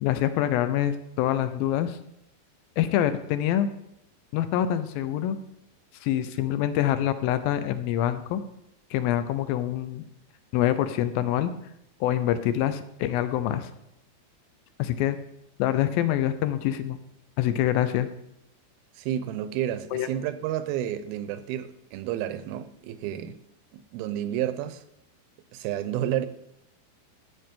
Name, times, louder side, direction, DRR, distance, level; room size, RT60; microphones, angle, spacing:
voice 1, 0.0-2.0 2.8-3.7 4.3-5.4 6.0-8.4 8.9-10.0 10.5-11.5 12.0-13.7 14.8-15.2 15.6-17.0 17.4-18.1 19.9-20.1, left 11 dB, 80° left, 2.4 m, -25 dB
voice 2, 19.0-23.4 23.7-24.8 25.5-26.3, right 11 dB, 85° right, 2.5 m, -30 dB
12.5 x 8.6 x 3.7 m
omnidirectional pair, 4.3 m